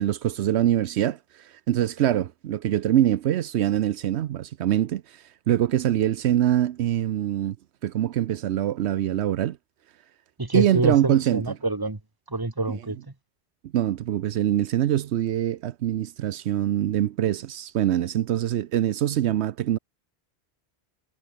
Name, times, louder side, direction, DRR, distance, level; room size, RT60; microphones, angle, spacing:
voice 1, 0.0-7.6 7.8-9.6 10.5-11.4 13.7-19.8, right 12 dB, 80° right, 0.9 m, -24 dB
voice 2, 10.4-12.0 12.3-13.0, right 2 dB, 20° right, 1.7 m, -26 dB
omnidirectional pair, 1.1 m